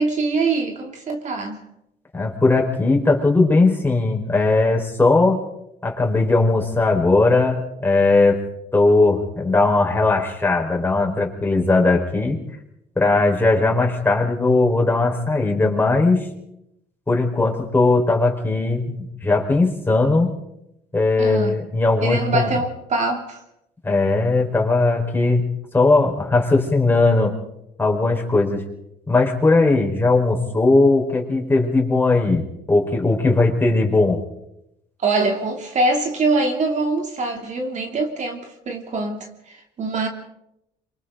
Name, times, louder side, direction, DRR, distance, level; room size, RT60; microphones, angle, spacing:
voice 1, 0.0-1.6 21.2-21.6 22.0-23.4 35.0-40.1, right 3 dB, 45° right, 2 dB, 2.9 m, -23 dB
voice 2, 2.1-5.5 5.8-8.4 8.7-12.4 13.0-16.3 17.1-20.3 20.9-22.5 23.8-27.3 27.8-28.6 29.1-34.2, left 3 dB, 10° left, 0 dB, 4.8 m, -18 dB
27.0 x 24.5 x 4.0 m, 0.81 s
cardioid pair, 110°, 17 cm